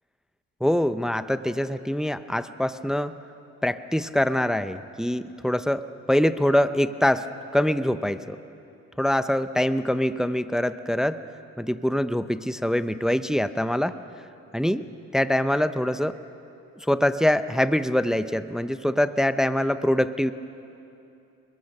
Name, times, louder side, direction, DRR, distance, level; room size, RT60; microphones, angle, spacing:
voice 1, 0.6-3.1 3.6-8.4 9.0-11.2 11.6-14.0 14.5-14.9 15.1-16.2 16.9-20.3, left 1 dB, ahead, 12 dB, 0.7 m, -24 dB
29.5 x 22.0 x 6.7 m, 2.7 s
cardioid pair, 90°, 30 cm